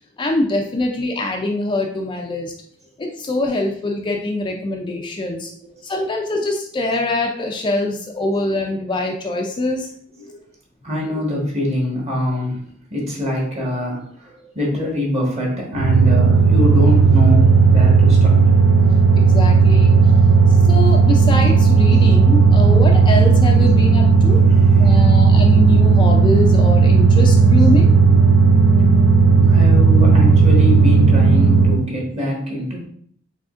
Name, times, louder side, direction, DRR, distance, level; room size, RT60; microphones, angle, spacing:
voice 1, 0.2-2.5 3.0-5.5 5.8-9.9 19.3-19.9 20.7-24.4 24.8-27.9, left 2 dB, 25° left, 1 dB, 0.4 m, -23 dB
voice 2, 10.8-12.6 12.9-18.5 24.5-25.1 29.4-32.9, left 1 dB, 30° right, -2 dB, 1.3 m, -24 dB
sound 1, 15.8-31.9, right 4 dB, 80° right, 0.5 m, -13 dB
4.8 x 3.5 x 2.4 m, 0.62 s
head